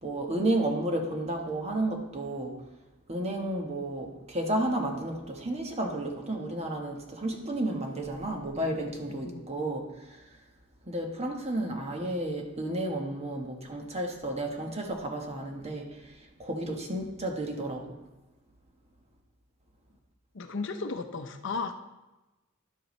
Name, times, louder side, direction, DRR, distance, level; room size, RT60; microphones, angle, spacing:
voice 1, 0.0-2.5 3.1-9.8 10.1-10.2 10.9-18.0, right 1 dB, 30° right, 2 dB, 1.2 m, -32 dB
voice 2, 20.3-21.8, left 4 dB, 60° left, 7 dB, 0.6 m, -34 dB
11.0 x 7.8 x 3.2 m, 1.1 s
head